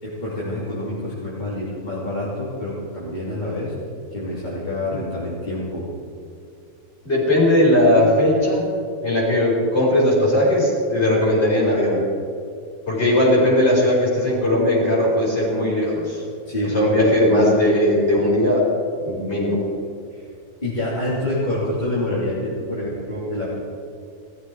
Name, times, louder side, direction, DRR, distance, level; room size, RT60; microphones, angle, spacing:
voice 1, 0.0-3.7 4.1-5.9 16.4-17.2 20.1-20.3 20.6-23.6, left 1 dB, 30° left, -8 dB, 3.3 m, -27 dB
voice 2, 7.0-8.6 9.0-12.0 12.9-16.3 16.7-18.6 19.0-19.6, left 1 dB, 45° left, -5 dB, 5.0 m, -18 dB
17.5 x 14.0 x 4.8 m, 2.4 s
omnidirectional pair, 1.6 m